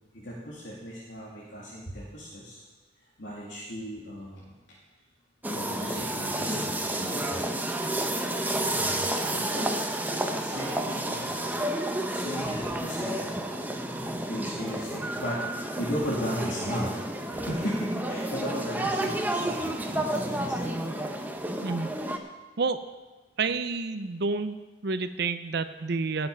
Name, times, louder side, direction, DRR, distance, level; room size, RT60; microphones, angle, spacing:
voice 1, 0.1-2.6 3.2-4.6 5.5-7.6 8.7-9.7 10.3-11.6 12.0-13.4 14.3-16.9 17.3-20.9, equal, 75° left, -7 dB, 2.5 m, -36 dB
sound 1, 5.4-22.2, right 1 dB, 10° right, 0.8 m, -31 dB
voice 2, 23.4-24.5 24.8-26.3, right 4 dB, 60° right, 10 dB, 0.6 m, -29 dB
18.0 x 7.0 x 5.4 m, 1.2 s
head